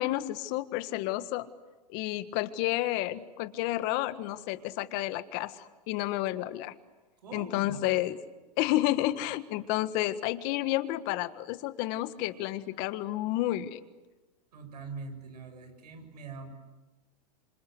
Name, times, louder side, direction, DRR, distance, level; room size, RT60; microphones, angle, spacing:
voice 1, 0.0-1.5 1.9-6.7 7.3-8.2 8.6-13.8, left 15 dB, 50° left, 12 dB, 1.7 m, -30 dB
voice 2, 7.2-7.8 14.5-16.5, right 4 dB, 85° right, 6 dB, 7.2 m, -43 dB
27.0 x 26.0 x 8.2 m, 1.2 s
hypercardioid pair, 115°, 20 cm